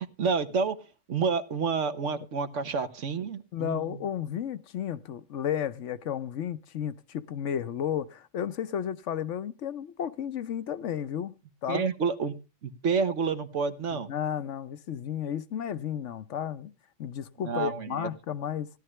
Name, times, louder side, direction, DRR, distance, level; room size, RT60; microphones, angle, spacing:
voice 1, 0.2-0.8 1.1-4.0 11.7-12.4 12.6-14.1 17.5-18.1, right 5 dB, 75° right, 1.4 m, -29 dB
voice 2, 3.5-11.3 11.6-11.8 13.9-16.7 17.0-18.7, left 9 dB, 75° left, 1.1 m, -33 dB
16.5 x 11.0 x 3.2 m
omnidirectional pair, 1.3 m